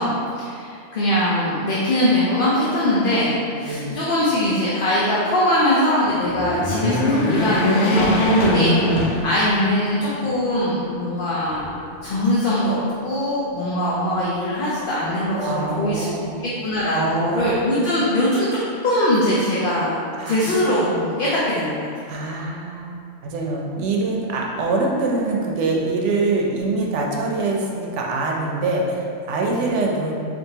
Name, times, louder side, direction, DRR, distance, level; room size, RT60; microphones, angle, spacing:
voice 1, 0.0-11.7 12.0-12.8 13.0-16.1 16.6-20.0 20.3-21.8, left 1 dB, 60° left, -7 dB, 0.7 m, -21 dB
voice 2, 3.7-4.0 15.4-16.5 16.9-17.7 20.1-20.9 22.1-30.1, right 3 dB, 80° right, -1 dB, 0.9 m, -24 dB
sound 1, 6.2-9.8 10.3-10.4 11.4-12.2, left 1 dB, 85° left, 0.9 m, -21 dB
4.4 x 2.6 x 2.7 m, 2.4 s
omnidirectional pair, 1.2 m